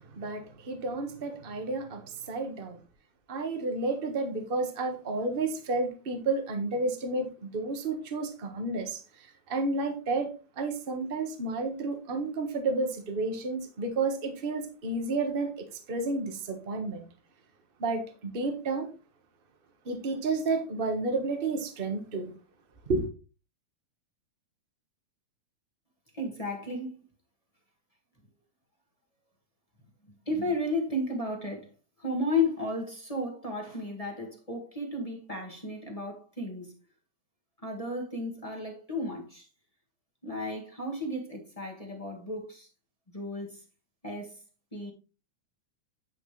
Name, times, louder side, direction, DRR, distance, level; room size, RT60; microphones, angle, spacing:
voice 1, 0.0-2.8 3.3-10.3 10.6-17.0 17.8-18.9 19.8-22.3 22.9-23.1, right 3 dB, 60° right, 0.5 m, -31 dB
voice 2, 26.1-27.1 30.2-31.7 32.0-36.7 37.6-39.5 40.2-42.7 43.1-43.6 44.0-44.4 44.7-44.9, left 2 dB, 15° left, 1.3 m, -33 dB
10.0 x 6.0 x 3.3 m
omnidirectional pair, 3.4 m